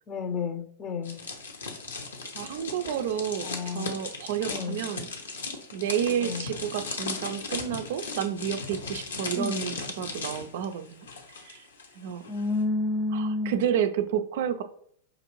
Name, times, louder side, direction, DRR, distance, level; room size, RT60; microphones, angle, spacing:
voice 1, 0.1-1.2 3.4-3.9 4.5-4.8 6.2-6.4 9.4-9.6 12.3-13.6, left 3 dB, 30° left, 8 dB, 0.6 m, -30 dB
sound 1, 1.0-11.9 12.1-12.4, left 4 dB, 80° left, 0.7 m, -37 dB
voice 2, 2.3-5.1 5.7-11.1 11.4-11.6 12.0-12.2 13.1-14.6, right 9 dB, 60° right, 9 dB, 0.4 m, -30 dB
5.0 x 2.6 x 2.9 m, 0.64 s
hypercardioid pair, 100°, 0 cm